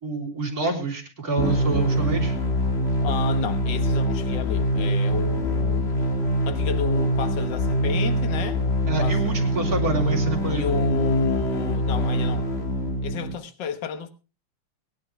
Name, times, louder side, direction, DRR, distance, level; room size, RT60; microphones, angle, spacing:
voice 1, 0.0-2.3 8.9-10.7, right 3 dB, 40° right, 4.0 m, -27 dB
sound 1, 1.4-13.3, equal, 30° left, 1.9 m, -24 dB
voice 2, 3.0-6.0 6.5-8.6 9.0-9.3 10.5-12.5 13.0-14.1, left 7 dB, 60° left, 1.9 m, -31 dB
23.0 x 10.5 x 3.2 m
omnidirectional pair, 2.4 m